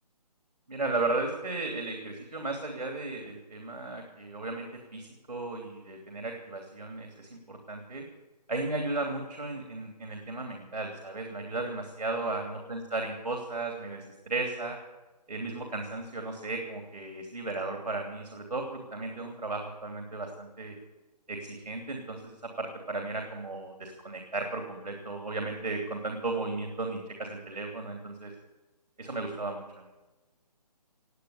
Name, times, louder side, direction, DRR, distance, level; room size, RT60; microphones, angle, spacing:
voice 1, 0.7-4.7 4.9-8.0 8.5-14.8 15.3-20.7 21.3-28.3 29.0-29.8, right 2 dB, 80° right, 3 dB, 3.0 m, -35 dB
18.5 x 9.5 x 7.2 m, 1.1 s
figure-of-eight pair, 145°, 21 cm